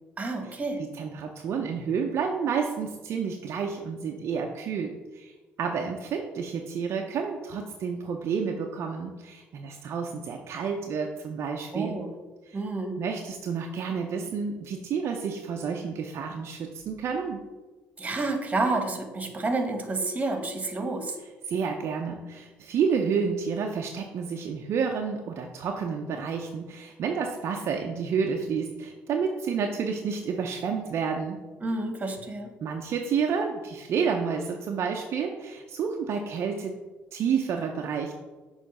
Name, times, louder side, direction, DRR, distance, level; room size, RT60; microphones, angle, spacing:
voice 1, 0.2-0.8 11.7-12.1 12.5-13.0 18.0-21.1 31.6-32.5, right 2 dB, 30° right, 5 dB, 1.3 m, -29 dB
voice 2, 0.8-5.3 5.6-12.0 12.5-12.6 13.0-17.4 21.5-31.4 32.6-36.7 37.1-38.1, right 6 dB, 65° right, 2 dB, 0.6 m, -30 dB
6.5 x 3.2 x 5.3 m, 1.2 s
supercardioid pair, 65°, 5 cm